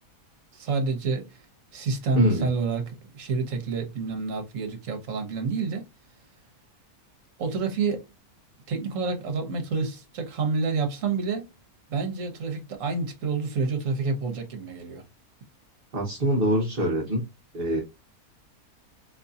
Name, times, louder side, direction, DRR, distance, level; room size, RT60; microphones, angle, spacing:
voice 1, 0.5-1.4 1.7-2.8 3.1-5.9 7.4-8.1 8.7-11.5 11.9-15.0, right 4 dB, 60° right, 1.3 m, -28 dB
voice 2, 2.1-2.5 15.9-17.3 17.5-17.8, equal, 40° right, 1.1 m, -24 dB
3.7 x 3.0 x 2.7 m
omnidirectional pair, 1.6 m